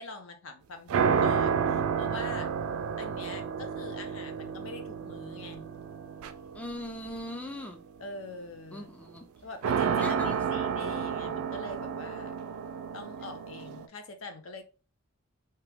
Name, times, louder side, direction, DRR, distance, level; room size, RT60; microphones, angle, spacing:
voice 1, 0.0-2.5 3.0-5.7 8.0-9.0 9.4-12.4 12.9-14.6, left 2 dB, 75° left, 0.6 m, -43 dB
sound 1, 0.9-7.2 9.6-13.9, right 6 dB, 80° right, 0.3 m, -31 dB
voice 2, 6.5-7.8 8.7-9.3 10.0-10.4, left 1 dB, 5° left, 0.3 m, -39 dB
2.9 x 2.2 x 3.4 m
head